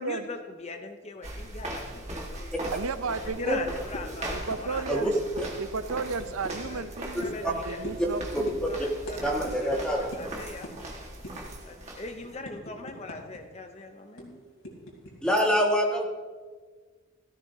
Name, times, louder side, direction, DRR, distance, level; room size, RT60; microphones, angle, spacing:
voice 1, 0.0-2.7 3.2-5.1 6.7-6.9 7.2-7.8 8.7-9.3 9.6-10.7 11.6-14.4, left 3 dB, 30° left, 5 dB, 0.7 m, -41 dB
sound 1, 1.2-12.4, right 1 dB, 30° right, 1.7 m, -39 dB
voice 2, 2.7-3.6 4.3-5.1 5.6-8.5, right 4 dB, 80° right, 12 dB, 0.6 m, -33 dB
sound 2, 3.9-4.1 4.5-4.6 4.9-5.0 5.4-5.5 6.2-6.8 7.2-7.4 7.8-8.1 8.5-8.6 9.1-9.2 9.5-9.6 10.1-10.2 10.6-10.8 11.2-11.5 11.9-13.4 13.7-13.8 14.2-15.1, left 1 dB, 80° left, 3.4 m, -40 dB
voice 3, 7.1-7.5 8.0-8.9 9.2-10.1 15.2-16.1, equal, 5° left, -2 dB, 1.8 m, -26 dB
16.5 x 14.0 x 2.8 m, 1.5 s
head